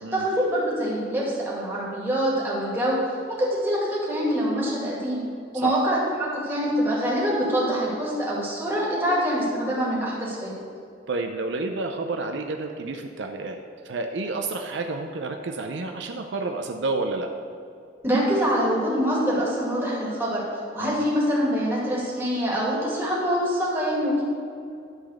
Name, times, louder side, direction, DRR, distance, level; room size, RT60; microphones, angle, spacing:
voice 1, 0.1-3.0 3.3-5.2 5.5-10.5 18.0-20.4 20.7-24.2, equal, 10° right, -6 dB, 2.2 m, -25 dB
voice 2, 11.1-13.6 13.8-17.3 20.8-21.0, right 3 dB, 70° right, 4 dB, 0.5 m, -30 dB
11.5 x 4.0 x 6.4 m, 2.5 s
head